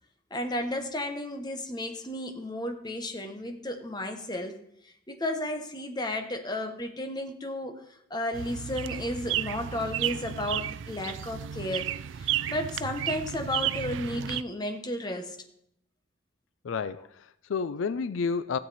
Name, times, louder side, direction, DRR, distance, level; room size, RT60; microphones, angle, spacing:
voice 1, 0.3-4.6 4.8-7.8 8.1-11.9 12.2-15.4, left 1 dB, 20° left, 5 dB, 1.1 m, -33 dB
Bird Calls in Backyard, 8.3-14.4, right 11 dB, 70° right, 0.3 m, -33 dB
voice 2, 16.6-18.6, left 5 dB, 80° left, 15 dB, 0.4 m, -30 dB
15.5 x 7.5 x 4.2 m, 0.74 s
head